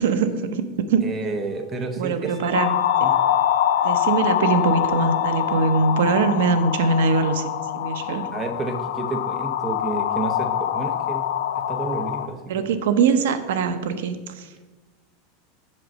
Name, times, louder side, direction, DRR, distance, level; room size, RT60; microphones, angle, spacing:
voice 1, 0.0-1.0 2.0-3.1 3.8-7.4 7.7-8.3 12.5-14.7, right 4 dB, 75° right, 10 dB, 0.8 m, -22 dB
Wind instrument woodwind instrument, 0.8-6.3, left 5 dB, 35° left, 1.2 m, -40 dB
voice 2, 1.0-2.3 3.0-3.1 8.3-11.3 11.7-12.7, right 3 dB, 20° right, 8 dB, 0.7 m, -30 dB
sound 1, 2.5-12.3, left 10 dB, 80° left, 0.5 m, -24 dB
7.5 x 5.2 x 6.3 m, 1.2 s
supercardioid pair, 170°, 0 cm